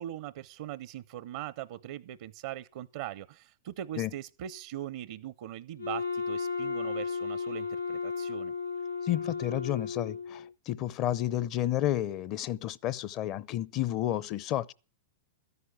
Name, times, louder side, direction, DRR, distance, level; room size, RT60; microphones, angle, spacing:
voice 1, 0.0-8.5, right 12 dB, 60° right, 0.6 m, -40 dB
Wind instrument woodwind instrument, 5.8-10.5, left 5 dB, 90° left, 0.6 m, -34 dB
voice 2, 9.0-14.7, left 13 dB, 40° left, 0.7 m, -31 dB
13.5 x 11.0 x 6.0 m
hypercardioid pair, 105°, 0 cm